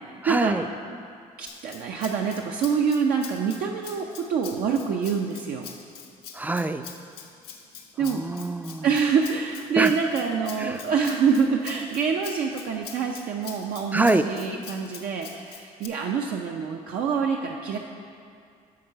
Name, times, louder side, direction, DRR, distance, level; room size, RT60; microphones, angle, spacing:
voice 1, 0.2-0.7 6.3-6.8 8.0-8.9 9.8-9.9 10.6-10.8 13.9-14.2, right 2 dB, 10° right, 9 dB, 0.3 m, -24 dB
voice 2, 1.4-5.7 8.0-8.2 8.8-17.8, right 6 dB, 70° right, 1 dB, 0.5 m, -26 dB
Rattle (instrument), 1.5-15.9, left 7 dB, 85° left, 0.7 m, -44 dB
8.6 x 3.8 x 5.6 m, 2.3 s
supercardioid pair, 75°, 16 cm